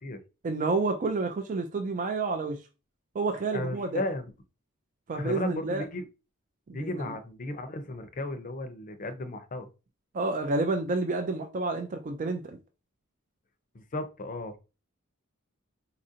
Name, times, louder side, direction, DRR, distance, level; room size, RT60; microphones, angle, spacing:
voice 1, 0.4-2.6 3.1-4.0 5.1-5.8 6.7-6.9 10.1-12.6, right 3 dB, 40° right, 0.4 m, -29 dB
voice 2, 3.5-4.2 5.1-6.0 6.7-9.7 13.7-14.6, left 2 dB, 40° left, 0.5 m, -35 dB
4.1 x 2.5 x 2.7 m
head